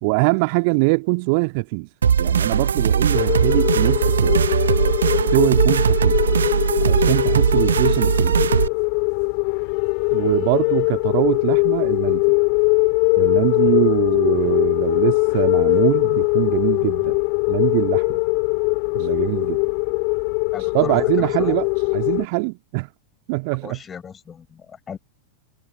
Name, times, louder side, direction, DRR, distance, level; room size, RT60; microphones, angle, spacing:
voice 1, 0.0-1.9 2.2-4.4 5.3-6.2 6.8-8.5 10.1-12.2 13.2-17.2 17.5-18.2 18.9-19.6 20.7-21.7 21.9-22.9 23.3-23.8, right 31 dB, 45° right, 1.8 m, -23 dB
sound 1, 2.0-8.7, right 7 dB, 70° right, 0.6 m, -19 dB
sound 2, 3.1-22.3, left 40 dB or more, 45° left, 1.7 m, -21 dB
voice 2, 20.5-21.7 23.6-25.0, left 7 dB, 20° left, 5.7 m, -37 dB
figure-of-eight pair, 90°, 0 cm